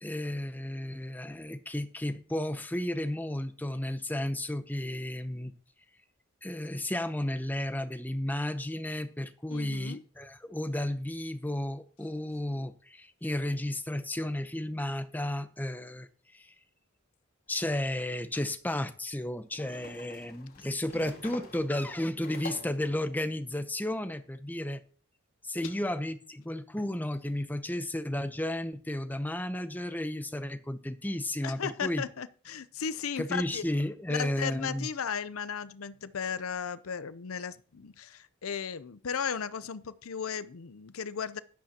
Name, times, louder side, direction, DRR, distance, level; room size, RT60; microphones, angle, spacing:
voice 1, 0.0-5.5 6.4-16.5 17.5-24.8 25.4-32.0 33.2-34.9, left 1 dB, 10° left, 0.7 m, -33 dB
voice 2, 9.5-10.0 25.6-25.7 31.4-33.6 34.1-41.4, left 7 dB, 75° left, 0.6 m, -35 dB
sound 1, 17.6-17.7 19.5-22.9, left 2 dB, 40° left, 3.3 m, -46 dB
13.5 x 11.5 x 2.9 m
head